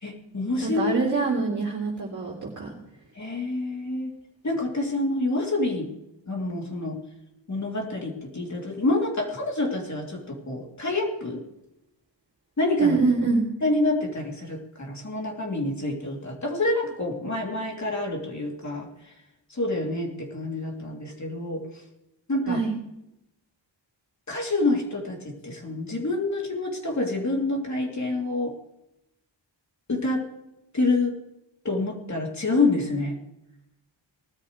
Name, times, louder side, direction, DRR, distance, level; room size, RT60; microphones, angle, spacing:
voice 1, 0.0-0.8 3.1-4.1 4.4-5.9 6.3-7.0 7.5-11.4 12.6-13.0 13.6-18.9 19.5-21.6 22.3-22.6 24.3-28.5 29.9-30.2 30.7-31.1 31.6-33.2, left 2 dB, 40° left, 0 dB, 3.2 m, -27 dB
voice 2, 0.6-2.7 12.8-13.5 22.5-22.7, right 4 dB, 40° right, -5 dB, 3.2 m, -24 dB
19.5 x 13.0 x 3.3 m, 0.85 s
wide cardioid pair, 115°, 45 cm